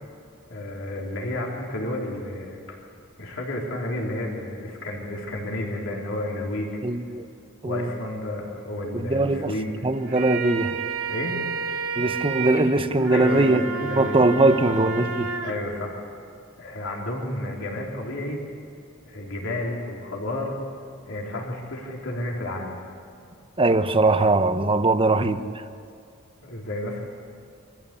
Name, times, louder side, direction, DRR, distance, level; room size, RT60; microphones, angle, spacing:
voice 1, 0.5-2.8 3.2-6.8 7.6-9.7 11.1-11.4 13.1-14.8 15.4-16.0 16.6-18.4 19.1-20.5 21.1-22.8 26.4-27.0, left 1 dB, 70° left, 3.7 m, -31 dB
voice 2, 6.8-7.3 7.6-7.9 8.9-9.5 9.8-10.7 12.0-15.3 23.6-25.4, right 2 dB, 25° right, 0.9 m, -21 dB
sound 1, 9.9-15.5, right 5 dB, 70° right, 2.7 m, -31 dB
25.0 x 14.5 x 8.3 m
head